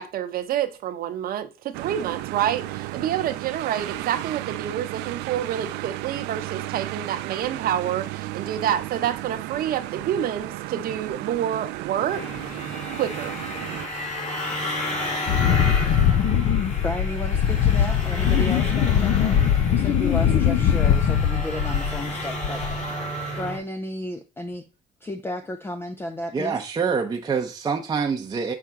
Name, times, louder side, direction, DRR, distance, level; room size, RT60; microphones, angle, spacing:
voice 1, 0.0-12.6 12.9-13.4, right 10 dB, 60° right, 0.9 m, -28 dB
sound 1, 1.7-13.9, right 17 dB, 90° right, 0.4 m, -34 dB
sound 2, 12.1-23.6, left 1 dB, 40° left, 3.1 m, -32 dB
Wind, 15.3-22.1 22.4-22.9, left 9 dB, 60° left, 0.6 m, -21 dB
voice 2, 16.8-22.6 23.4-24.6 25.0-26.6, left 1 dB, 15° left, 0.5 m, -33 dB
voice 3, 26.3-28.5, right 5 dB, 25° right, 0.7 m, -26 dB
5.7 x 4.4 x 3.7 m
cardioid pair, 110°, 17 cm